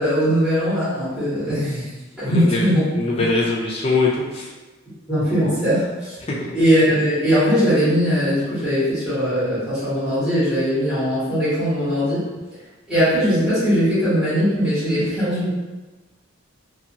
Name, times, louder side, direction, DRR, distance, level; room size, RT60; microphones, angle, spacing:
voice 1, 0.0-1.9 2.2-2.9 5.1-6.2 6.5-12.2 12.9-15.5, equal, 5° right, -15 dB, 1.2 m, -20 dB
voice 2, 2.3-2.7 3.0-4.5 6.3-6.6, left 3 dB, 30° left, -4 dB, 0.4 m, -22 dB
2.6 x 2.6 x 2.8 m, 1.2 s
head